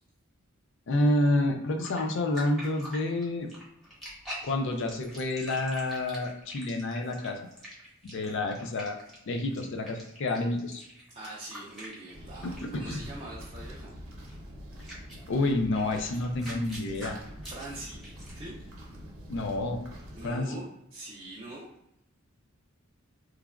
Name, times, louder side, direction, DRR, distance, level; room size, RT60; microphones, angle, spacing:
voice 1, 0.9-3.5 4.4-7.5 8.0-9.0 9.3-10.8 12.4-13.0 15.3-17.2 19.3-19.8 20.2-20.6, left 2 dB, 65° left, 4 dB, 0.4 m, -29 dB
sound 1, 1.8-12.3 12.6-12.8 14.3-14.4 14.8-18.5, equal, ahead, 0.7 m, -45 dB
voice 2, 11.1-13.9 17.4-18.0 18.3-18.6 20.2-21.7, right 1 dB, 30° right, -6 dB, 0.4 m, -43 dB
sound 2, 12.1-20.3, equal, 80° right, 0.8 m, -45 dB
3.1 x 2.2 x 2.3 m, 0.79 s
head